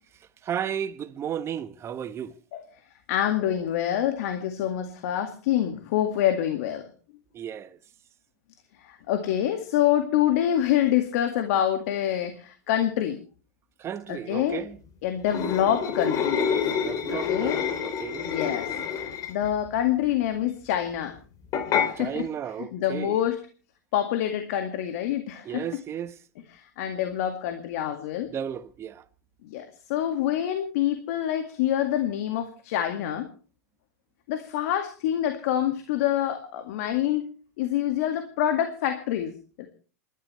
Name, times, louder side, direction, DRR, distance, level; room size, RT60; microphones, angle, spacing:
voice 1, 0.4-2.3 7.3-7.8 13.8-14.8 16.8-18.3 22.0-23.2 25.4-26.2 28.3-29.0, right 9 dB, 30° right, 1.3 m, -34 dB
voice 2, 3.1-6.8 8.8-13.2 14.1-14.7 15.0-16.4 17.1-17.6 18.2-21.2 21.7-22.3 22.6-23.4 23.9-25.6 26.5-28.3 29.4-33.3 34.3-37.3 37.6-39.3 39.6-39.7, left 11 dB, 65° left, 2.1 m, -26 dB
sound 1, 15.3-19.5 21.5-21.9, left 7 dB, 40° left, 2.8 m, -27 dB
29.0 x 12.5 x 3.3 m
hypercardioid pair, 105°, 9 cm